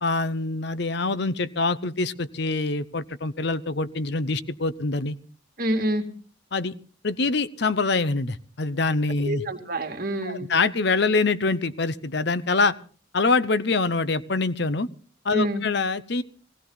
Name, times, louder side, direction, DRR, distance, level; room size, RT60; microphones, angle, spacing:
voice 1, 0.0-5.2 6.5-6.7 7.0-9.4 10.2-12.7 13.1-14.9 15.2-16.2, left 3 dB, 55° left, 15 dB, 0.7 m, -25 dB
voice 2, 5.6-6.0 9.2-10.5 15.3-15.6, right 1 dB, 45° right, 5 dB, 2.3 m, -26 dB
18.5 x 16.5 x 3.9 m, 0.41 s
head